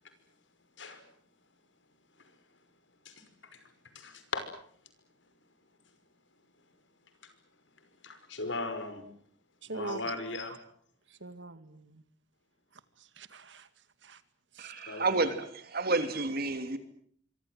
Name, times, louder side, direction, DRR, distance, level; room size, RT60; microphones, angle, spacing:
voice 1, 3.9-4.5 7.2-7.3 8.0-9.0 9.7-10.6 14.9-15.3, left 3 dB, 75° left, 10 dB, 5.5 m, -38 dB
voice 2, 9.7-10.0 11.2-12.0 13.2-13.7 14.0-14.2 14.5-14.7, right 2 dB, 70° right, 12 dB, 2.1 m, -42 dB
voice 3, 14.6-16.8, right 3 dB, 55° right, 9 dB, 3.1 m, -30 dB
25.5 x 25.0 x 7.9 m, 0.62 s
head